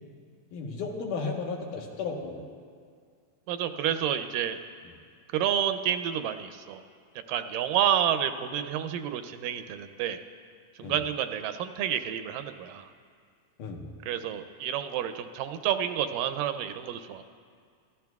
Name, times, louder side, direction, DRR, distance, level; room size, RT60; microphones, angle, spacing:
voice 1, 0.5-2.4 4.8-4.9 10.8-11.0 13.6-13.8, left 4 dB, 75° left, 1 dB, 2.7 m, -34 dB
voice 2, 3.5-4.6 5.3-6.8 7.3-10.2 10.8-12.9 14.1-17.2, right 9 dB, 85° right, 9 dB, 2.3 m, -29 dB
24.0 x 15.0 x 2.3 m, 2.1 s
omnidirectional pair, 3.8 m